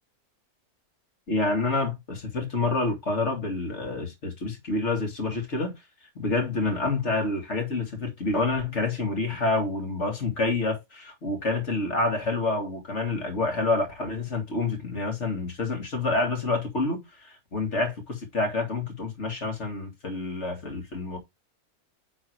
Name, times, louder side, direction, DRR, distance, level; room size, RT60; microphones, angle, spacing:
voice 1, 1.3-5.7 6.2-21.2, left 3 dB, 50° left, 2.4 m, -28 dB
9.3 x 3.9 x 4.6 m
omnidirectional pair, 1.6 m